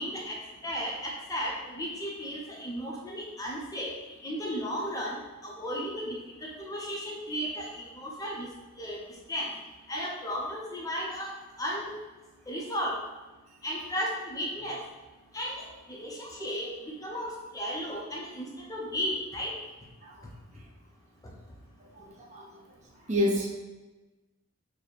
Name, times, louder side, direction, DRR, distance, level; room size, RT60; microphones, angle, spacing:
voice 1, 0.0-3.9 4.2-6.2 6.4-8.5 8.8-9.0 9.3-9.5 9.9-11.3 11.6-11.9 12.5-13.0 13.6-14.8 15.3-16.7 17.0-19.5, equal, 15° left, -2 dB, 0.6 m, -34 dB
voice 2, 21.9-22.6 23.1-23.5, left 1 dB, 35° right, -1 dB, 0.7 m, -29 dB
4.6 x 2.1 x 4.5 m, 1.1 s
head